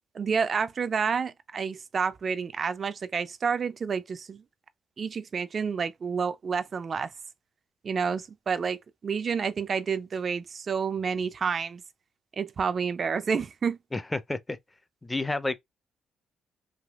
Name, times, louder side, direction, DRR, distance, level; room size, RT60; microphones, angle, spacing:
voice 1, 0.1-4.4 5.0-7.1 7.8-8.8 9.0-11.8 12.4-13.8, right 6 dB, 45° right, 0.4 m, -29 dB
voice 2, 13.9-14.6 15.0-15.6, left 2 dB, 15° left, 0.5 m, -30 dB
3.4 x 2.7 x 2.4 m
cardioid pair, 90°, 0 cm